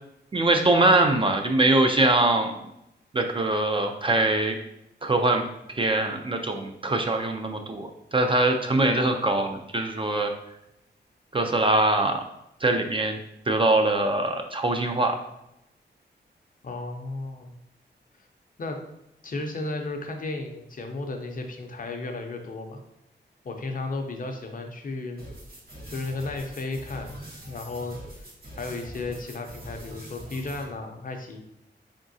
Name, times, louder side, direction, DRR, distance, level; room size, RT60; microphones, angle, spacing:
voice 1, 0.3-2.6 3.1-4.6 5.0-5.5 5.7-10.3 11.3-12.2 12.6-13.2 13.5-15.2, right 2 dB, 30° right, 4 dB, 0.4 m, -23 dB
voice 2, 16.6-17.6 18.6-18.8 19.2-22.8 23.4-25.3 25.9-27.2 27.4-28.3 28.5-31.4, left 2 dB, 50° left, 4 dB, 0.6 m, -34 dB
sound 1, 25.2-30.6, equal, 55° right, 1.4 m, -43 dB
3.9 x 3.6 x 2.6 m, 0.83 s
wide cardioid pair, 130°, 18 cm